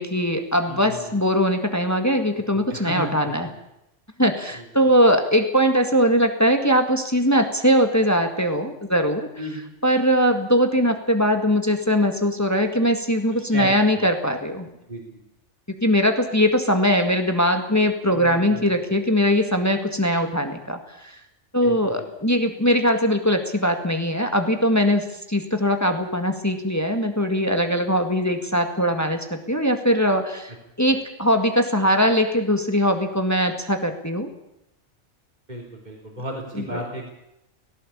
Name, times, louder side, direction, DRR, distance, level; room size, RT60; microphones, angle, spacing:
voice 1, 0.0-3.5 4.2-9.5 9.8-14.7 15.7-21.2 21.5-34.3 36.5-36.8, equal, 15° left, 6 dB, 1.9 m, -21 dB
voice 2, 0.7-1.1 2.5-3.5 4.5-4.6 9.4-9.7 13.5-14.1 14.9-15.2 18.1-18.7 21.6-22.1 35.5-37.1, right 1 dB, 35° right, 0 dB, 3.9 m, -34 dB
18.0 x 17.5 x 8.7 m, 0.86 s
omnidirectional pair, 1.2 m